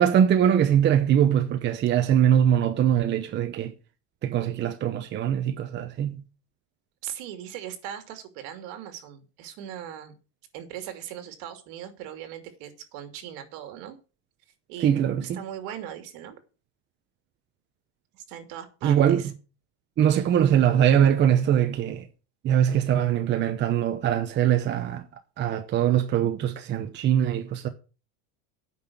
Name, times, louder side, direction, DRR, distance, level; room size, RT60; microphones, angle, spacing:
voice 1, 0.0-3.7 4.2-6.2 14.8-15.4 18.8-19.3 20.0-22.1 22.4-25.1 25.4-27.7, right 9 dB, 30° right, 0.9 m, -22 dB
voice 2, 7.0-10.2 10.5-14.0 14.7-16.4 18.1-19.3, right 10 dB, 60° right, 2.8 m, -39 dB
9.3 x 6.0 x 8.5 m
supercardioid pair, 155°, 39 cm